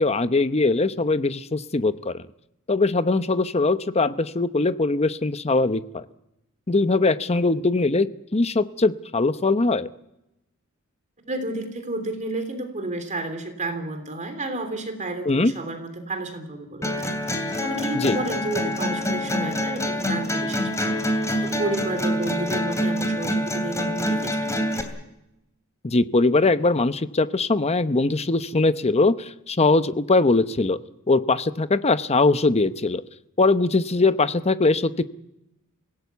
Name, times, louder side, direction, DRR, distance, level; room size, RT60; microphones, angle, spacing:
voice 1, 0.0-2.2 2.7-6.1 6.7-9.9 15.3-15.5 17.9-18.2 25.8-30.8 31.1-33.0 33.4-35.0, left 3 dB, 30° left, 13 dB, 0.8 m, -21 dB
voice 2, 11.2-24.6, right 2 dB, 35° right, 7 dB, 3.3 m, -31 dB
sound 1, 16.8-24.8, equal, 15° left, 2.7 m, -26 dB
25.5 x 17.5 x 8.3 m, 0.90 s
head